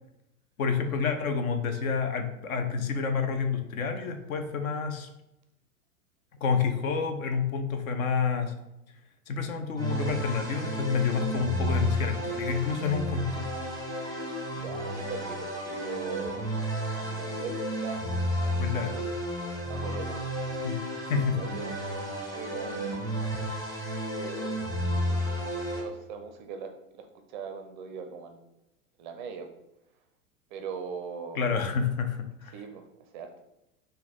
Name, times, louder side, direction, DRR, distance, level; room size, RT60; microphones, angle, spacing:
voice 1, 0.6-5.1 6.4-8.5 9.3-13.5 18.6-18.9 20.6-20.8 21.1-21.4 31.4-32.5, left 5 dB, 65° left, 6 dB, 0.8 m, -29 dB
sound 1, 9.8-25.8, equal, 10° left, 0.9 m, -32 dB
voice 2, 14.5-16.5 16.9-18.1 18.4-19.1 19.7-20.4 21.3-23.1 24.1-24.6 25.0-25.5 25.8-28.5 29.0-29.5 30.5-31.7 32.5-33.4, right 5 dB, 35° right, 5 dB, 0.4 m, -41 dB
4.0 x 2.6 x 4.1 m, 0.89 s
figure-of-eight pair, 90°, 46 cm